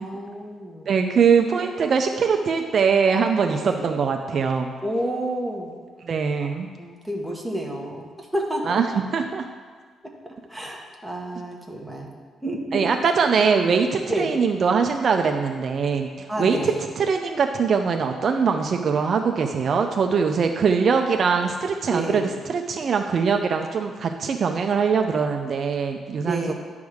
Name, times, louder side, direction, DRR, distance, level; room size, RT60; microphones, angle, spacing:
voice 1, 0.0-0.9 3.6-3.9 4.8-5.7 6.4-6.5 6.8-9.0 10.2-12.1 12.4-12.9 14.1-14.4 16.3-16.8 21.9-22.3 26.2-26.5, right 1 dB, ahead, -1 dB, 1.2 m, -30 dB
voice 2, 0.9-4.7 6.1-6.7 8.7-8.8 9.1-9.4 12.7-16.1 16.4-22.2 22.5-26.5, right 5 dB, 50° right, 4 dB, 0.5 m, -22 dB
10.5 x 3.6 x 6.3 m, 1.5 s
cardioid pair, 130°, 0 cm